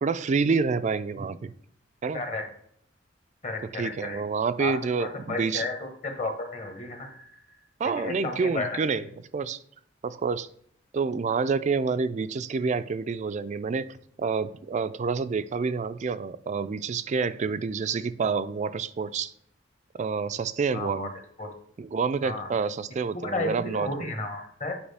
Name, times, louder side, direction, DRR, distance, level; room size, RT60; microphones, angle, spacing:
voice 1, 0.0-1.5 2.0-2.2 3.7-5.6 7.8-9.0 9.3-9.6 10.0-10.5 10.9-19.3 20.0-21.1 21.8-23.9, right 5 dB, 40° right, 0.3 m, -28 dB
voice 2, 2.1-2.5 3.4-4.2 4.6-7.3 8.0-9.1 20.7-21.1 21.4-21.5 22.2-22.5 23.1-24.8, left 2 dB, 40° left, 1.2 m, -33 dB
8.7 x 4.8 x 3.4 m
head